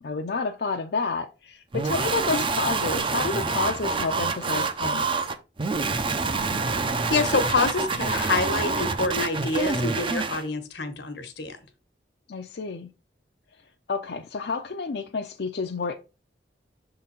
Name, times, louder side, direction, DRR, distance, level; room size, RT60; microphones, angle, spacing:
voice 1, 0.0-5.1 12.3-12.9 13.9-16.0, left 4 dB, 65° left, 0.5 m, -30 dB
sound 1, 1.7-10.4, right 4 dB, 30° right, 0.5 m, -27 dB
voice 2, 7.1-11.6, left 3 dB, 85° left, 1.2 m, -26 dB
6.5 x 3.8 x 4.3 m
head